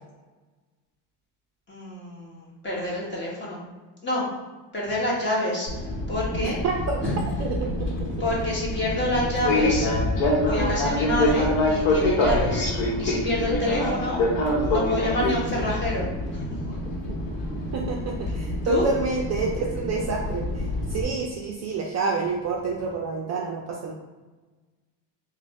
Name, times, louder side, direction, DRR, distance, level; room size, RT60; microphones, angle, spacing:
voice 1, 1.7-3.6 4.0-4.2 4.7-5.7 6.1-6.6 7.0-7.1 8.2-9.9 10.4-12.7 13.0-14.2 14.6-16.1 18.6-18.8, left 1 dB, 25° left, -5 dB, 1.2 m, -27 dB
Fixed-wing aircraft airplane, 5.7-21.0, left 1 dB, 80° left, 1.0 m, -26 dB
voice 2, 6.4-7.0 7.4-8.0 15.2-15.3 17.0-17.2 17.5-23.9, right 4 dB, 40° right, 0 dB, 0.4 m, -28 dB
3.1 x 2.2 x 4.0 m, 1.3 s
cardioid pair, 130°, 44 cm